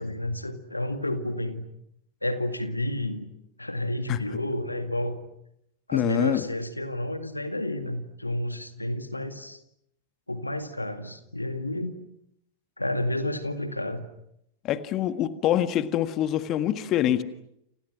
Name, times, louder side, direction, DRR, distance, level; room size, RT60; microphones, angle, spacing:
voice 1, 0.0-1.7 2.2-3.3 3.6-5.2 5.9-9.6 10.3-12.0 12.8-14.1, left 1 dB, 85° left, 9 dB, 2.0 m, -30 dB
voice 2, 5.9-6.4 14.6-17.2, left 11 dB, 35° left, 11 dB, 1.6 m, -25 dB
29.5 x 29.0 x 6.2 m, 0.79 s
figure-of-eight pair, 90°, 0 cm